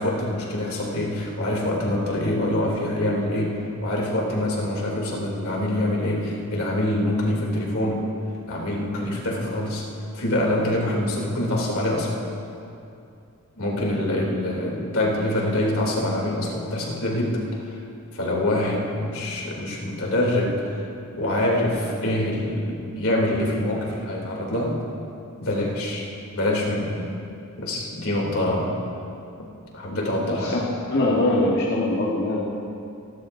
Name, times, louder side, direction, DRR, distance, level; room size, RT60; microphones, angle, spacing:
voice 1, 0.0-8.0 8.4-9.8 10.1-12.1 13.6-17.8 18.1-24.8 25.4-26.1 26.3-26.9 27.6-28.8 29.4-29.5 29.7-30.7, left 1 dB, 70° left, -3 dB, 3.0 m, -25 dB
voice 2, 30.3-32.4, left 2 dB, 50° left, -6 dB, 1.5 m, -23 dB
28.0 x 11.5 x 2.7 m, 2.6 s
head